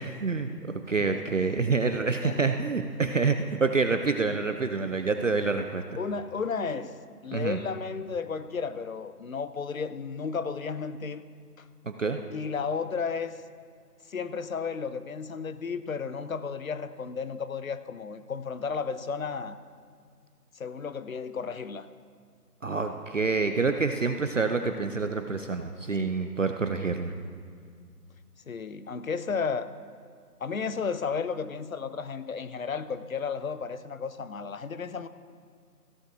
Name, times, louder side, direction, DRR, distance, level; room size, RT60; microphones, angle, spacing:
voice 1, 0.0-5.8 7.3-7.6 11.9-12.2 22.6-27.1, right 4 dB, 55° right, 7 dB, 0.5 m, -27 dB
voice 2, 1.8-2.6 6.0-6.9 7.2-11.2 11.6-11.7 12.3-13.4 14.1-19.6 20.5-21.9 28.5-29.7 30.4-35.1, left 5 dB, 60° left, 12 dB, 0.6 m, -33 dB
15.5 x 11.0 x 2.6 m, 2.1 s
figure-of-eight pair, 165°, 48 cm